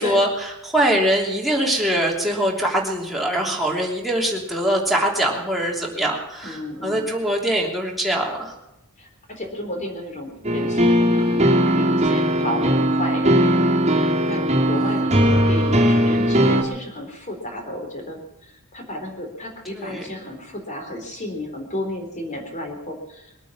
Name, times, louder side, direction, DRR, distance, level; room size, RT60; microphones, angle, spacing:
voice 1, 0.0-8.5 14.7-15.2 19.7-20.1, right 1 dB, ahead, -3 dB, 3.1 m, -23 dB
voice 2, 6.4-7.1 9.0-18.2 18.7-23.3, left 1 dB, 35° left, 3 dB, 3.8 m, -32 dB
sound 1, 10.4-16.6, equal, 30° right, 2.4 m, -18 dB
22.0 x 9.0 x 7.3 m, 0.88 s
head